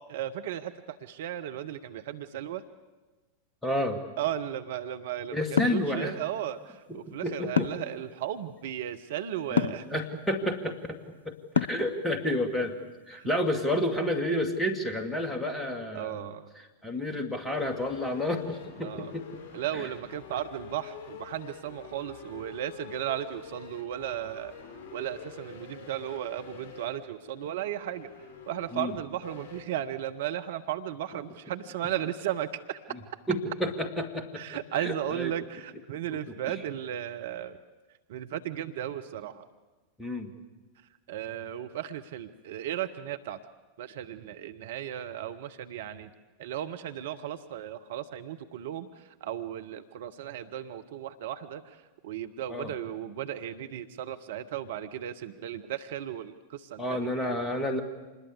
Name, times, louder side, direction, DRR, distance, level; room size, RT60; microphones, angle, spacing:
voice 1, 0.1-2.6 4.2-10.0 13.1-13.3 15.9-16.5 18.8-19.1 19.5-24.5 24.9-28.1 28.5-32.8 34.3-37.6 38.1-39.5 41.1-43.4 43.8-46.1 46.4-57.4, right 11 dB, 55° right, 9 dB, 1.0 m, -35 dB
voice 2, 3.6-4.0 5.3-6.1 6.9-7.7 9.5-11.0 11.2-12.8 13.1-16.2 16.8-19.3 28.7-28.9 33.3-34.4 34.8-35.3 36.1-36.2 40.0-40.3 52.5-52.7 56.8-57.8, left 1 dB, 10° left, 6 dB, 2.6 m, -30 dB
sound 1, 5.6-5.9 7.6-7.9 9.6-9.9 11.5-11.9, left 6 dB, 70° left, 0.7 m, -26 dB
sound 2, 17.5-29.6, left 5 dB, 30° left, 6.9 m, -47 dB
26.5 x 20.5 x 8.4 m, 1.2 s
figure-of-eight pair, 90°, 0 cm